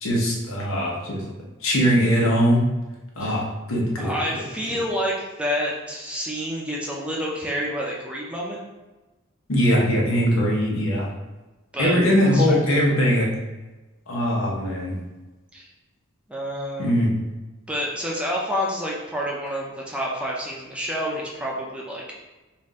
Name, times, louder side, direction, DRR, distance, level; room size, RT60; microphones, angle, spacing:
voice 1, 0.0-1.2 1.6-2.6 3.2-3.4 3.7-4.2 9.5-11.1 11.8-13.3 14.1-15.0 16.8-17.1, equal, 90° left, -2 dB, 1.0 m, -21 dB
voice 2, 4.0-8.6 11.7-12.0 12.3-12.6 15.5-15.7 16.3-16.9 17.7-22.1, equal, 5° right, -4 dB, 0.6 m, -28 dB
4.3 x 2.6 x 3.7 m, 1.1 s
head